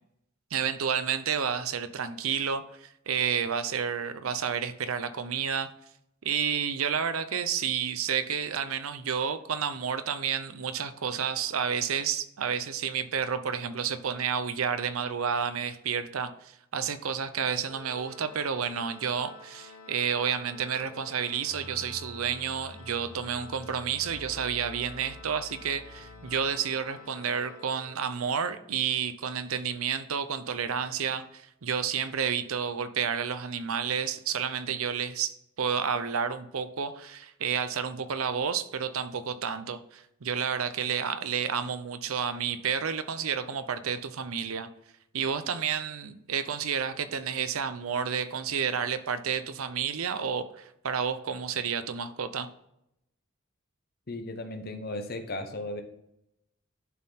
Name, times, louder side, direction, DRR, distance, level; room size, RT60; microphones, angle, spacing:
voice 1, 0.5-5.7 6.2-44.7 45.1-52.5, right 7 dB, 80° right, 12 dB, 0.6 m, -30 dB
Organ, 17.6-28.3, left 4 dB, 85° left, 1.2 m, -50 dB
sound 1, 21.4-26.9, left 1 dB, 10° left, 0.8 m, -48 dB
voice 2, 54.1-55.8, left 2 dB, 45° left, 6 dB, 1.0 m, -36 dB
11.0 x 4.2 x 4.1 m, 0.80 s
head